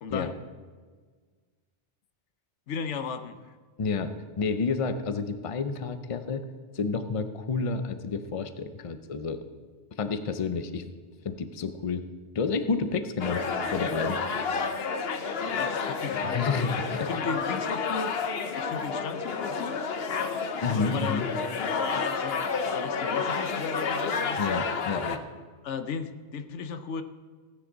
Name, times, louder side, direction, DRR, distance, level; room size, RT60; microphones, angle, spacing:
voice 1, 0.0-0.3 2.7-3.5 15.3-16.7 17.1-18.3 18.5-19.8 20.7-21.3 21.7-24.6 25.6-27.0, left 6 dB, 85° left, 10 dB, 1.1 m, -36 dB
voice 2, 3.8-6.4 6.7-9.4 10.0-10.8 11.2-12.0 12.3-13.4 13.7-14.2 16.2-17.1 20.6-21.3 24.4-25.2, left 4 dB, 35° left, 10 dB, 0.7 m, -30 dB
sound 1, 13.2-25.2, left 5 dB, 60° left, 1.0 m, -30 dB
16.5 x 9.7 x 3.9 m, 1.5 s
omnidirectional pair, 1.2 m